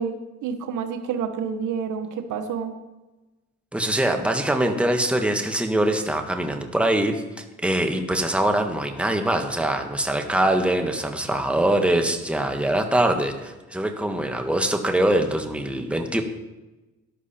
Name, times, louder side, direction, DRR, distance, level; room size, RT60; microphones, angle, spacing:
voice 1, 0.0-2.7, right 6 dB, 80° right, 7 dB, 1.3 m, -29 dB
voice 2, 3.7-7.2 7.6-16.2, right 1 dB, 5° right, 4 dB, 1.5 m, -23 dB
13.5 x 11.0 x 4.3 m, 1.1 s
cardioid pair, 90°, 30 cm